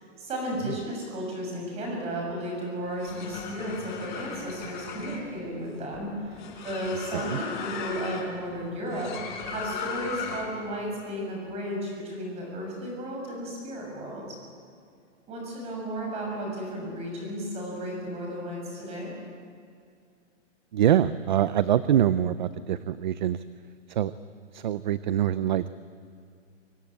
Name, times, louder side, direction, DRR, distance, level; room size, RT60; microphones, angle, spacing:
voice 1, 0.0-9.1 9.5-14.3 15.3-19.1, equal, 15° right, 0 dB, 7.2 m, -34 dB
sound 1, 2.8-10.7, left 5 dB, 40° left, 4.5 m, -37 dB
voice 2, 20.7-23.4 24.0-24.1 24.5-25.7, right 10 dB, 40° right, 14 dB, 0.6 m, -24 dB
24.5 x 23.5 x 8.7 m, 2.3 s
hypercardioid pair, 170°, 37 cm